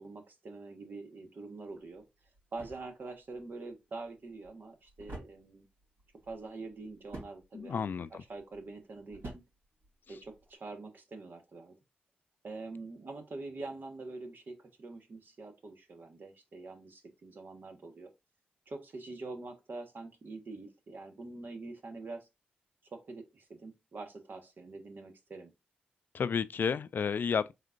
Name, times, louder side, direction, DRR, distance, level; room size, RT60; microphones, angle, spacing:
voice 1, 0.0-2.0 2.5-5.7 6.2-9.4 10.1-11.7 12.4-18.1 18.7-22.3 22.9-25.5, right 3 dB, 60° right, 1.2 m, -45 dB
sound 1, 1.7-10.6, right 2 dB, 75° right, 2.9 m, -52 dB
voice 2, 7.5-8.2 26.1-27.5, left 6 dB, 60° left, 0.3 m, -31 dB
4.2 x 3.7 x 2.5 m
supercardioid pair, 40°, 4 cm